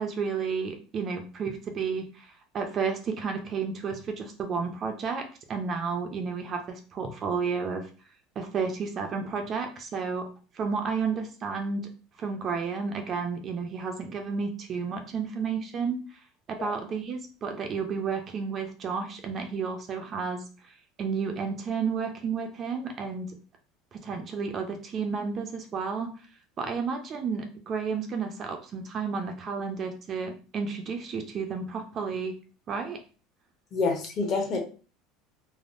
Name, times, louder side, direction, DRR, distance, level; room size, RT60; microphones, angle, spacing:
voice 1, 0.0-7.9 8.4-10.3 10.5-11.9 12.2-16.0 16.5-20.4 21.0-23.3 23.9-26.1 26.6-32.4 32.7-33.0, right 5 dB, 30° right, 5 dB, 0.4 m, -32 dB
voice 2, 33.7-34.6, left 4 dB, 35° left, 2 dB, 0.7 m, -27 dB
3.3 x 2.0 x 2.5 m, 0.36 s
cardioid pair, 160°, 0 cm